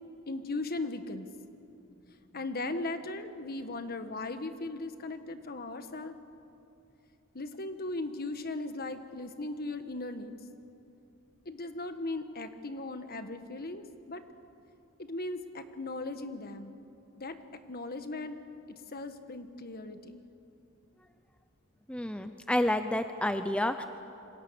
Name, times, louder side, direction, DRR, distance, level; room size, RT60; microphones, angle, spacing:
voice 1, 0.3-1.3 2.1-6.2 7.3-10.3 11.4-14.2 15.0-16.8 17.2-17.4 17.7-18.4 18.9-20.2, left 2 dB, 45° left, 8 dB, 1.4 m, -38 dB
voice 2, 21.9-23.8, left 1 dB, 5° left, 8 dB, 0.6 m, -29 dB
27.0 x 24.5 x 7.0 m, 2.8 s
head